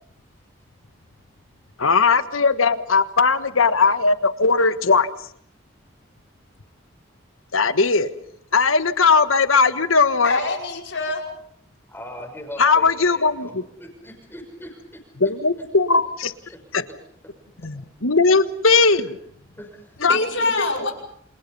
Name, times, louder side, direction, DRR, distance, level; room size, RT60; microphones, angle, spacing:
voice 1, 1.8-5.1 7.5-8.1 8.5-10.4 12.6-13.6 15.2-16.3 16.7-16.8 17.6-19.2 20.0-20.2 20.6-20.7, left 4 dB, 80° left, 12 dB, 1.5 m, -18 dB
voice 2, 10.2-11.2 20.1-20.9, left 2 dB, 65° left, 2 dB, 5.4 m, -24 dB
voice 3, 11.9-14.8 19.6-20.8, left 1 dB, 10° left, 2 dB, 5.9 m, -40 dB
29.0 x 27.5 x 5.5 m, 0.66 s
head